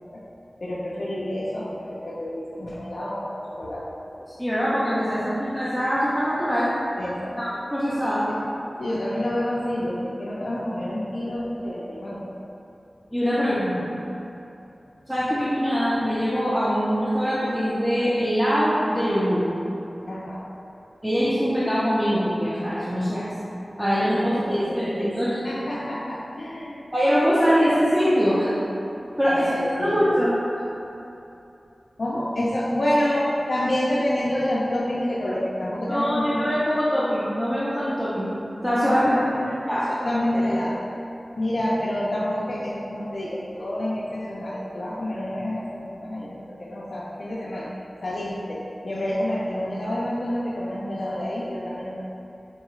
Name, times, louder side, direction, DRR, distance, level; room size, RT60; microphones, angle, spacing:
voice 1, 0.6-3.8 4.2-4.3 5.0-5.1 7.0-7.4 8.3-8.4 8.8-12.3 13.3-13.5 20.1-20.4 24.1-25.1 25.4-26.8 29.3-30.0 32.0-36.4 38.8-39.6 39.9-40.8 41.4-47.7 48.0-51.9, left 1 dB, 65° left, -7 dB, 0.4 m, -28 dB
voice 2, 4.4-6.7 7.4-8.2 13.1-13.8 15.1-19.4 21.0-23.3 23.8-25.4 26.9-28.5 29.2-30.3 35.9-38.3 38.6-39.2 39.7-39.8, equal, 10° right, -10 dB, 0.6 m, -23 dB
4.5 x 2.3 x 3.1 m, 2.8 s
cardioid pair, 45°, 0 cm